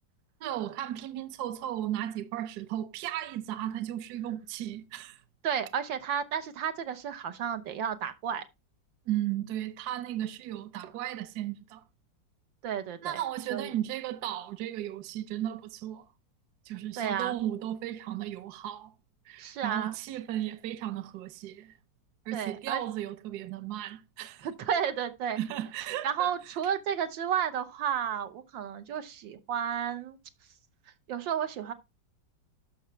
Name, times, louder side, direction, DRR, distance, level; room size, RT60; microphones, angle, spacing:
voice 1, 0.4-5.2 9.1-11.8 13.0-16.1 16.6-18.9 19.2-21.7 22.3-24.5 25.4-26.3, right 12 dB, 65° right, 1.2 m, -35 dB
voice 2, 5.4-8.5 12.6-13.2 13.5-13.7 17.0-17.4 19.4-20.0 22.3-22.8 24.4-25.4 26.0-30.2 31.1-31.7, right 8 dB, 85° right, 1.8 m, -32 dB
13.0 x 5.9 x 3.1 m
omnidirectional pair, 2.0 m